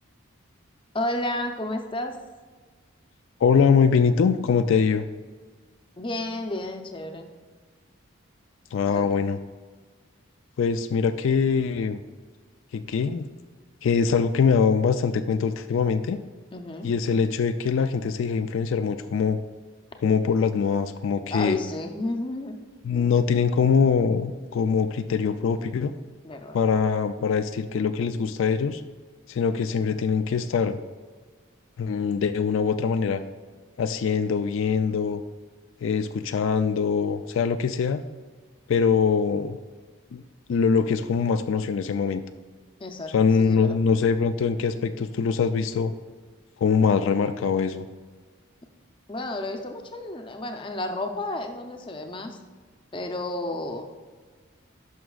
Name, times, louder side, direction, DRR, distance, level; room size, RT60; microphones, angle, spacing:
voice 1, 0.9-2.2 6.0-7.3 8.9-9.1 16.5-16.9 21.3-22.6 22.9-23.1 26.2-26.6 42.8-43.1 43.4-43.8 49.1-52.4 52.9-53.8, left 1 dB, 25° left, 5 dB, 0.6 m, -31 dB
voice 2, 3.4-5.0 8.7-9.4 10.6-12.0 12.7-13.3 13.8-16.2 16.8-19.4 20.0-21.6 22.8-25.9 26.5-28.8 29.3-30.8 31.8-33.2 33.8-35.2 35.8-38.0 38.7-39.6 40.1-40.2 40.5-42.2 43.1-45.9 46.6-47.9, left 6 dB, 70° left, 9 dB, 0.3 m, -23 dB
11.0 x 6.0 x 2.4 m, 1.4 s
head